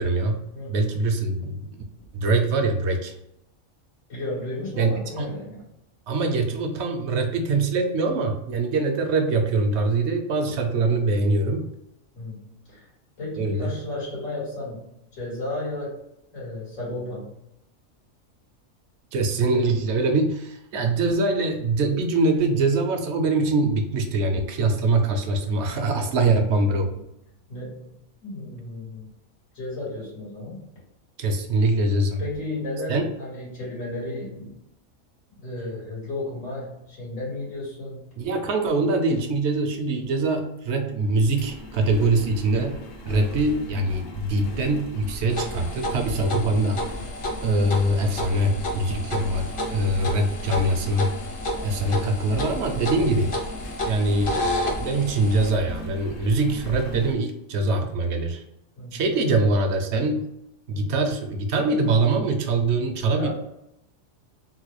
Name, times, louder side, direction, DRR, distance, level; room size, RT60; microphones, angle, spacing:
voice 1, 0.0-0.4 0.7-1.7 2.1-3.1 4.8-5.3 6.1-11.6 13.4-13.7 19.1-26.9 31.2-32.2 32.9-33.0 38.2-42.8 43.1-46.8 47.4-51.2 51.6-53.3 53.9-54.4 54.8-58.4 58.9-60.3 60.7-63.3, right 2 dB, 70° right, 5 dB, 0.8 m, -23 dB
voice 2, 4.1-5.6 12.1-12.9 13.2-16.0 16.3-17.4 27.5-29.1 29.5-30.6 32.2-34.6 35.4-38.1 47.6-47.8 58.8-59.0 60.7-61.0 63.1-63.3, left 2 dB, 90° left, -7 dB, 2.2 m, -34 dB
Engine, 41.1-57.1, left 1 dB, 65° left, 0.9 m, -38 dB
sound 1, 45.3-55.5, left 1 dB, 40° left, 0.4 m, -31 dB
3.8 x 2.2 x 3.0 m, 0.82 s
omnidirectional pair, 1.3 m